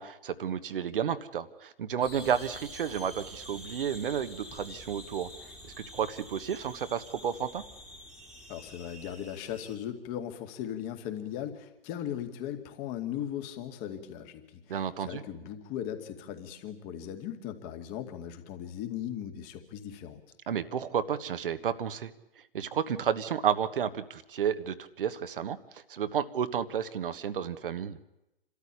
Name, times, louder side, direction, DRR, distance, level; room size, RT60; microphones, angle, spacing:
voice 1, 0.0-5.3 5.9-7.6 14.7-15.2 20.5-22.1 22.5-25.6 25.9-28.0, right 8 dB, 60° right, 12 dB, 1.4 m, -31 dB
sound 1, 2.0-9.8, left 1 dB, ahead, 2.1 m, -47 dB
voice 2, 8.5-20.2, left 10 dB, 30° left, 6 dB, 2.4 m, -38 dB
27.5 x 13.5 x 10.0 m, 0.92 s
figure-of-eight pair, 120°, 30 cm